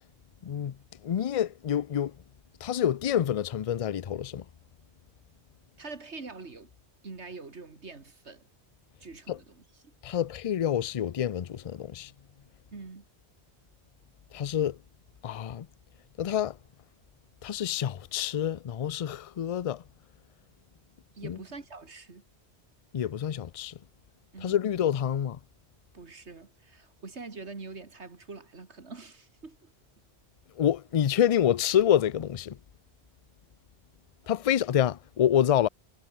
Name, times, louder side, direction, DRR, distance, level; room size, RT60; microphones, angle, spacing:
voice 1, 0.4-0.8 1.0-2.1 2.6-4.4 9.3-9.4 10.0-12.1 14.3-14.8 15.2-15.7 16.2-16.6 17.4-19.8 21.2-21.4 22.9-23.8 24.4-25.4 30.6-32.6 34.3-35.7, left 10 dB, 45° left, 0.4 m, -27 dB
voice 2, 5.8-6.7 7.0-8.5 9.0-9.9 12.7-13.0 21.2-22.2 24.3-24.6 25.9-29.7, right 4 dB, 85° right, 2.7 m, -44 dB
omnidirectional pair, 1.1 m